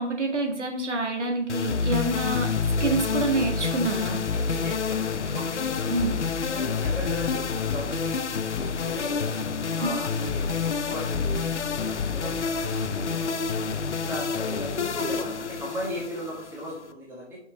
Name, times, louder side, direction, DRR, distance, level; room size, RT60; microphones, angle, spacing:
voice 1, 0.0-2.5 2.8-4.2 5.9-6.1, right 2 dB, 90° right, 1 dB, 1.8 m, -27 dB
sound 1, 1.5-16.9, left 5 dB, 85° left, 0.7 m, -28 dB
voice 2, 4.1-6.1 6.5-9.3 9.7-13.6 14.0-17.4, equal, 5° right, -6 dB, 1.5 m, -37 dB
7.9 x 5.9 x 3.2 m, 0.72 s
figure-of-eight pair, 140°, 34 cm